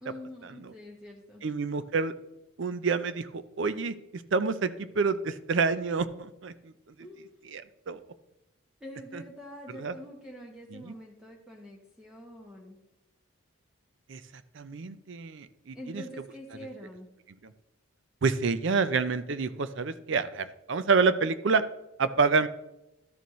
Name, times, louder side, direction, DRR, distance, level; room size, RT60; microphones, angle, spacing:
voice 1, 0.0-1.4 7.0-7.4 8.8-12.8 15.7-17.1, left 1 dB, 5° right, -2 dB, 0.9 m, -45 dB
voice 2, 1.4-2.1 2.6-6.5 7.5-8.0 9.1-9.2 9.8-9.9 10.7-10.9 14.1-14.2 14.5-16.0 18.2-21.6 22.0-22.5, right 4 dB, 60° right, 13 dB, 0.5 m, -28 dB
12.5 x 6.9 x 3.1 m, 0.91 s
head